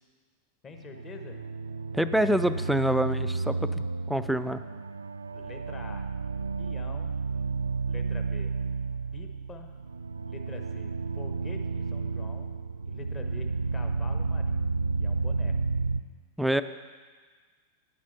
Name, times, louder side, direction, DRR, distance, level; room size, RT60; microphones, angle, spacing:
voice 1, 0.6-1.4 5.3-6.1 6.6-7.2 7.8-8.5 9.1-9.7 10.2-12.5 12.9-14.7 15.0-15.5, left 5 dB, 25° left, 5 dB, 1.1 m, -46 dB
sound 1, 0.7-16.0, right 4 dB, 75° right, 0.3 m, -32 dB
voice 2, 1.9-4.6 16.4-16.6, right 1 dB, 5° right, 12 dB, 0.4 m, -26 dB
9.9 x 7.4 x 5.7 m, 1.5 s
figure-of-eight pair, 90°, 0 cm